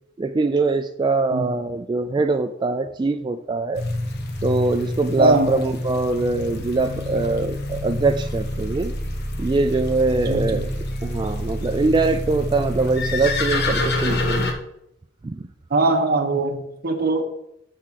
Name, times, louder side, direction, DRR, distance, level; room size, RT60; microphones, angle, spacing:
voice 1, 0.2-3.8 4.4-8.9 9.4-10.7 11.0-14.5 15.2-15.5, right 3 dB, 25° right, 7 dB, 0.3 m, -23 dB
sound 1, 3.7-14.5, left 1 dB, 55° left, 1.1 m, -27 dB
voice 2, 5.2-5.6 10.2-10.7 15.7-17.2, right 2 dB, 50° right, 5 dB, 1.0 m, -21 dB
6.5 x 4.7 x 5.7 m, 0.79 s
head